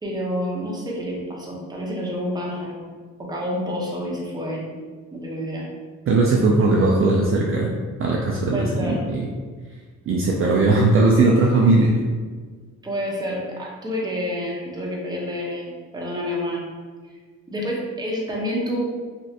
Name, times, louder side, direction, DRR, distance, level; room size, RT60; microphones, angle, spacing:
voice 1, 0.0-4.7 5.1-5.7 8.5-9.1 12.8-16.7 17.5-18.8, equal, 15° right, -3 dB, 0.8 m, -28 dB
voice 2, 6.1-7.7 8.0-9.3 10.1-12.0, right 2 dB, 45° right, -2 dB, 0.5 m, -18 dB
3.1 x 2.5 x 2.8 m, 1.5 s
cardioid pair, 90°, 30 cm